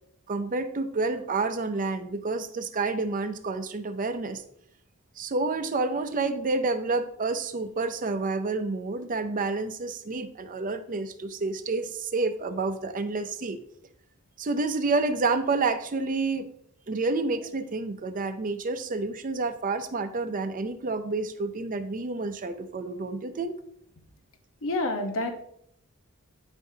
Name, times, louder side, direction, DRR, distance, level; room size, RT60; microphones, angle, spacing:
voice 1, 0.3-4.4 5.2-13.6 14.4-16.5 16.9-23.5, right 3 dB, 40° right, 0.5 m, -29 dB
voice 2, 24.6-25.4, left 2 dB, 65° left, 1.0 m, -28 dB
8.9 x 5.5 x 2.7 m
head